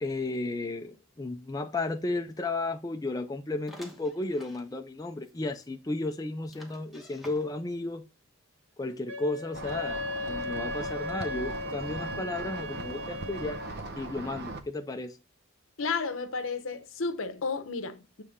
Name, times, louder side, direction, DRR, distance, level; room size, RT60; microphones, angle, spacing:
voice 1, 0.0-8.0 8.8-13.6 14.0-15.2, left 2 dB, 15° left, 0.4 m, -34 dB
sound 1, 3.7-4.7 5.2-5.3 5.6-5.7 6.5-7.8, left 1 dB, ahead, 1.1 m, -50 dB
Wind instrument woodwind instrument, 9.1-13.7, left 2 dB, 85° right, 1.6 m, -36 dB
sound 2, 9.5-14.6, right 2 dB, 50° right, 0.7 m, -39 dB
voice 2, 15.8-18.2, left 4 dB, 75° left, 0.7 m, -32 dB
7.1 x 3.3 x 4.9 m
head